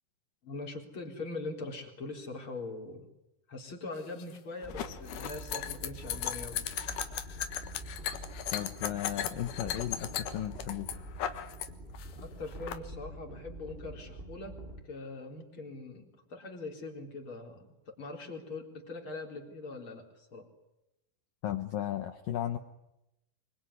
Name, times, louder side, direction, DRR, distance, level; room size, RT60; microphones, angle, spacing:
voice 1, 0.4-3.1 3.5-6.6 12.1-14.6 14.8-20.4, left 3 dB, 30° left, 2 dB, 4.3 m, -42 dB
sound 1, 4.0-11.7 11.9-12.8, left 10 dB, 65° left, 2.1 m, -37 dB
sound 2, 4.6-14.8, equal, 15° right, 2.4 m, -46 dB
voice 2, 8.5-10.9 21.4-22.6, left 12 dB, 85° left, 8 dB, 1.9 m, -35 dB
25.5 x 24.0 x 9.9 m, 0.90 s
omnidirectional pair, 5.6 m